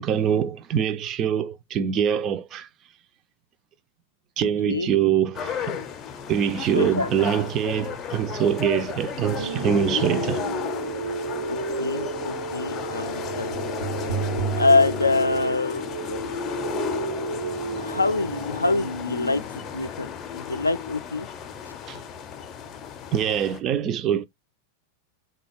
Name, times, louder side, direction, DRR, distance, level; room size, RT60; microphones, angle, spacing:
voice 1, 0.0-2.7 4.4-5.9 6.3-10.5 21.9-22.0 23.1-24.3, right 9 dB, 30° right, 0.3 m, -24 dB
voice 2, 4.7-5.0 6.7-7.1 11.5-13.6 14.6-15.8 17.8-19.4 19.7-21.3, left 3 dB, 80° left, 0.3 m, -25 dB
sound 1, 5.3-23.6, left 7 dB, 30° left, 0.6 m, -33 dB
sound 2, 9.4-19.4, right 5 dB, 70° right, 0.7 m, -32 dB
3.5 x 2.2 x 3.4 m
figure-of-eight pair, 90°, 0 cm